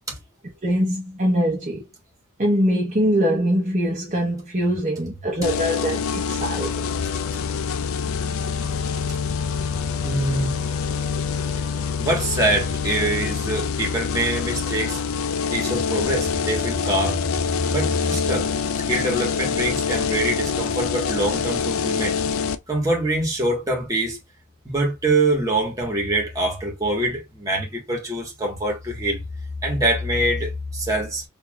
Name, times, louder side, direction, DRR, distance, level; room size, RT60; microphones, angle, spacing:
voice 1, 0.6-1.8 2.4-6.9, equal, 35° right, 1.0 m, -23 dB
sound 1, 5.4-22.6, left 6 dB, 90° left, 0.5 m, -25 dB
voice 2, 10.0-10.5 12.0-15.0 15.5-17.2 17.7-18.5 18.9-22.2 22.7-24.2 24.6-29.2 29.6-31.2, right 1 dB, 15° right, 1.5 m, -24 dB
4.7 x 2.9 x 2.4 m
head